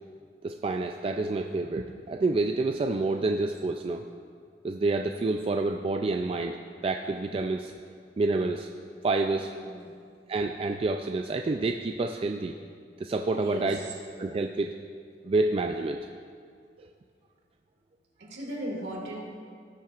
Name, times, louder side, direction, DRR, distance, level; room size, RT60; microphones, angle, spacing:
voice 1, 0.4-4.0 4.6-6.6 6.8-7.7 8.2-8.7 9.0-9.5 10.3-12.5 13.0-13.8 14.2-14.7 15.2-16.0 16.8-16.9, right 3 dB, 30° right, 4 dB, 0.3 m, -28 dB
voice 2, 9.4-9.9 13.4-13.9 15.3-15.4 18.2-19.2, right 1 dB, 70° right, -2 dB, 2.2 m, -37 dB
18.0 x 7.3 x 2.4 m, 2.2 s
head